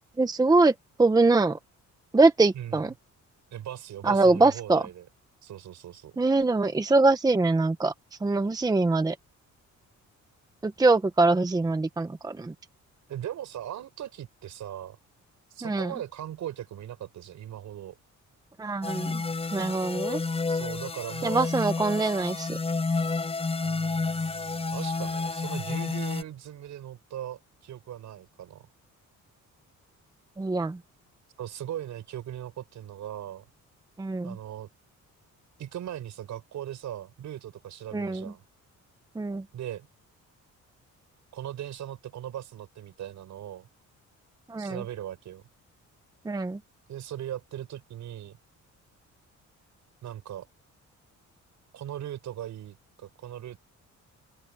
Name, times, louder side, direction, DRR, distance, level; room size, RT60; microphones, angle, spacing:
voice 1, 0.2-1.6 2.1-2.9 4.0-4.8 6.2-7.9 8.2-9.2 10.6-12.5 15.6-15.9 18.6-19.2 19.5-20.2 21.2-22.6 30.4-30.8 34.0-34.4 37.9-38.2 39.2-39.4 44.5-44.8 46.2-46.6, right 3 dB, 10° right, 0.9 m, -23 dB
voice 2, 3.5-5.1 5.4-6.2 13.1-15.0 15.5-18.0 20.5-21.5 23.6-28.7 31.4-33.4 34.2-34.7 35.6-38.4 39.5-39.9 41.3-43.7 44.6-45.4 46.9-48.4 50.0-50.5 51.7-53.6, right 11 dB, 65° right, 6.6 m, -39 dB
sound 1, 18.8-26.2, left 3 dB, 20° left, 4.7 m, -30 dB
open air
cardioid pair, 160°, 31 cm